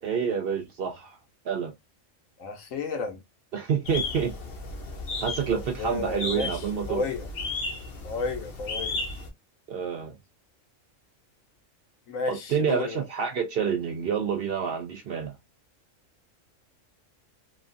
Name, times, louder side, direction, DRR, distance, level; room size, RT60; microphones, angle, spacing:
voice 1, 0.0-1.2 1.4-1.7 3.5-4.3 5.2-7.0 9.7-10.1 12.3-15.3, right 7 dB, 60° right, 0.6 m, -28 dB
voice 2, 2.4-3.2 5.8-7.3 8.0-9.0 12.1-13.0, left 4 dB, 75° left, 1.2 m, -32 dB
sound 1, 3.8-9.3, left 3 dB, 55° left, 0.8 m, -34 dB
3.0 x 2.3 x 2.5 m
omnidirectional pair, 1.4 m